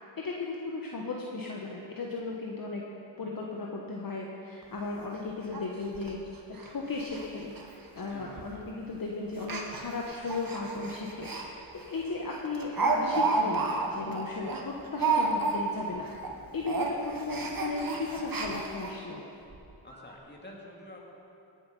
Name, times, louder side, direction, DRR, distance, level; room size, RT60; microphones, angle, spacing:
voice 1, 0.2-2.8 3.2-6.2 6.6-7.5 8.0-16.1 16.5-19.2, left 3 dB, 45° left, -1 dB, 1.4 m, -36 dB
Speech, 4.6-4.7 5.1-5.2 5.5-5.6 5.9-6.1 6.5-6.7 7.0-7.2 7.5-7.6 8.4-8.6 9.4-11.4 11.8-11.9 12.3-15.9 16.1-16.3 16.6-18.9 19.5-19.6 19.9-20.0, right 3 dB, 45° right, 1.8 m, -31 dB
voice 2, 8.1-8.6 19.8-21.0, left 1 dB, 20° left, -2 dB, 2.8 m, -48 dB
17.5 x 8.1 x 5.5 m, 2.7 s
cardioid pair, 70°, 47 cm